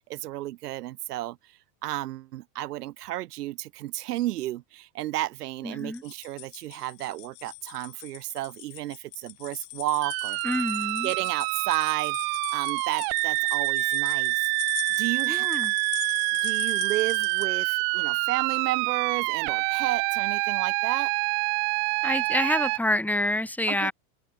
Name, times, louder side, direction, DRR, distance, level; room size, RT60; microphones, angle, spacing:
voice 1, 0.0-10.4 11.0-12.2 12.5-14.5 15.0-15.5 16.4-21.1 23.7-23.9, right 15 dB, 75° right, 2.1 m, -32 dB
voice 2, 5.6-6.0 10.4-11.1 15.3-15.7 22.0-23.9, left 1 dB, 5° left, 5.2 m, -27 dB
sound 1, 5.8-17.5, left 40 dB or more, 50° left, 2.9 m, -42 dB
sound 2, 10.0-22.8, right 40 dB or more, 50° right, 3.9 m, -27 dB
open air
supercardioid pair, 135°, 47 cm